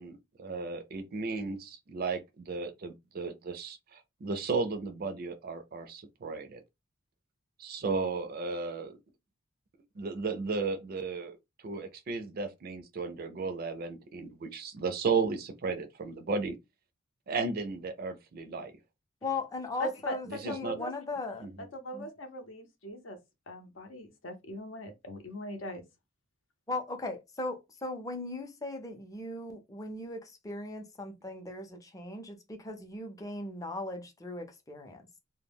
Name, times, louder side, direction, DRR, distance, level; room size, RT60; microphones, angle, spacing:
voice 1, 0.0-6.6 7.6-9.0 10.0-11.4 11.6-16.6 17.3-18.7 20.3-20.8 21.4-21.7, right 4 dB, 45° right, 0.4 m, -34 dB
voice 2, 19.2-21.5 21.9-22.1 26.7-35.0, left 2 dB, 15° left, 0.5 m, -38 dB
voice 3, 19.8-20.9 21.7-23.2 23.5-25.8, equal, 65° left, 0.7 m, -40 dB
2.1 x 2.1 x 3.3 m
head